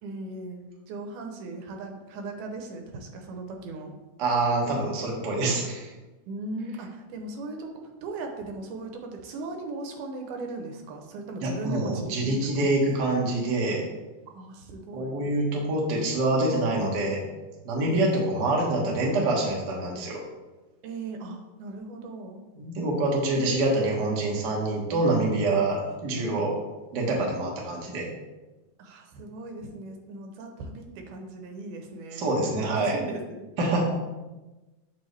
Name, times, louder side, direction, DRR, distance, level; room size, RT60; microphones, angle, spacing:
voice 1, 0.0-3.9 6.3-12.7 14.3-15.2 17.8-18.5 20.8-22.4 25.9-26.0 28.8-33.5, right 2 dB, 80° right, 4 dB, 2.3 m, -38 dB
voice 2, 4.2-5.9 11.4-13.8 14.9-17.2 17.6-20.2 22.6-26.5 26.9-28.1 32.1-33.0 33.6-33.8, right 2 dB, 55° right, -2 dB, 1.2 m, -26 dB
7.2 x 5.4 x 3.2 m, 1.1 s
omnidirectional pair, 3.6 m